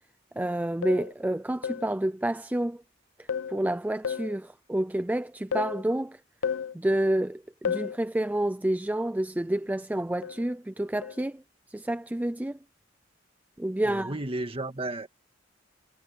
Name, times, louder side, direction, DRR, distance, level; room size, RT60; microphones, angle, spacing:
voice 1, 0.4-2.8 3.2-6.2 6.7-11.4 11.7-12.6 13.6-14.2, right 1 dB, 10° right, 0.4 m, -29 dB
sound 1, 0.8-1.1 1.6-1.9 3.3-3.6 4.0-4.4 5.5-5.8 6.4-6.8 7.7-8.0 10.2-10.5 11.0-11.2, left 7 dB, 90° left, 0.7 m, -32 dB
voice 2, 13.8-15.1, right 2 dB, 30° right, 1.9 m, -33 dB
head